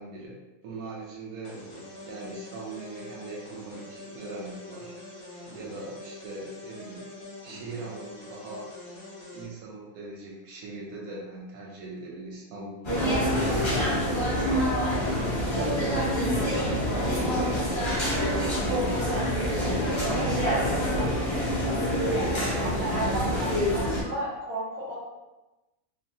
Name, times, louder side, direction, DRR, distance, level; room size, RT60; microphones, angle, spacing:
voice 1, 0.0-1.6 2.1-5.0 5.5-7.1 7.4-8.7 9.3-12.8 13.2-14.9 15.4-18.0 18.6-19.0 19.5-20.4 20.8-23.5, right 2 dB, 85° right, -4 dB, 1.1 m, -40 dB
sound 1, 1.4-9.4, left 2 dB, 50° left, 1.0 m, -44 dB
sound 2, 12.8-24.0, equal, 30° left, 0.5 m, -26 dB
voice 2, 22.1-23.5 23.7-25.0, right 1 dB, 40° right, -7 dB, 0.7 m, -34 dB
3.0 x 2.1 x 2.6 m, 1.1 s
omnidirectional pair, 1.5 m